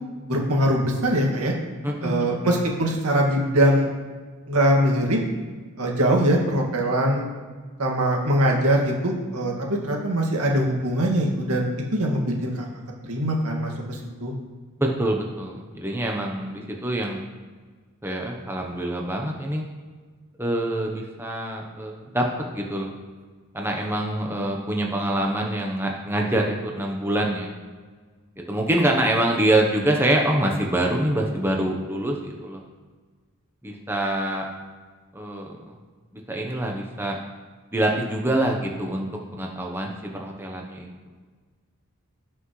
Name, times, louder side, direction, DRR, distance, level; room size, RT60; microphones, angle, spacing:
voice 1, 0.3-1.5 2.0-3.9 4.5-5.2 5.8-7.3 7.8-12.7 13.0-14.3, right 1 dB, 90° right, 0 dB, 2.1 m, -22 dB
voice 2, 1.8-2.4 14.8-17.3 18.0-19.6 20.4-22.3 22.5-22.9 23.5-27.5 28.4-32.6 33.6-34.5 35.1-35.7 36.3-37.2 37.7-39.1 39.3-39.9 40.2-40.9, right 1 dB, 10° right, 0 dB, 0.9 m, -25 dB
17.5 x 5.9 x 3.2 m, 1.5 s
head